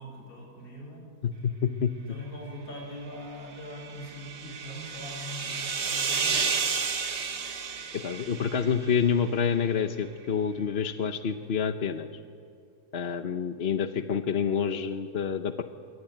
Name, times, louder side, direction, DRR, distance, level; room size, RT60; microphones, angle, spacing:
voice 1, 0.0-1.1 2.1-6.6, equal, 65° left, -1 dB, 8.6 m, -42 dB
voice 2, 1.2-1.9 7.9-12.1 12.9-15.6, left 7 dB, 45° left, 8 dB, 1.1 m, -28 dB
sound 1, 3.5-9.1, right 5 dB, 45° right, 1.5 m, -32 dB
27.5 x 22.5 x 9.2 m, 2.2 s
omnidirectional pair, 1.6 m